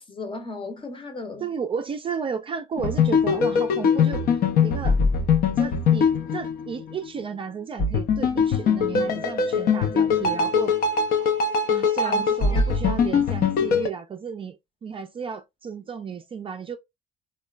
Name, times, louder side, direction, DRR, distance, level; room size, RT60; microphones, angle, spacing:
voice 1, 0.0-1.5 12.0-12.2 12.5-13.0, left 3 dB, 30° left, 0.8 m, -36 dB
voice 2, 1.4-4.2 4.6-5.0 5.6-10.7 11.7-14.6 14.8-16.8, right 6 dB, 30° right, 0.4 m, -33 dB
sound 1, 2.8-7.1 7.8-13.9, left 5 dB, 60° left, 0.6 m, -22 dB
3.0 x 2.2 x 2.3 m
cardioid pair, 110°, 17 cm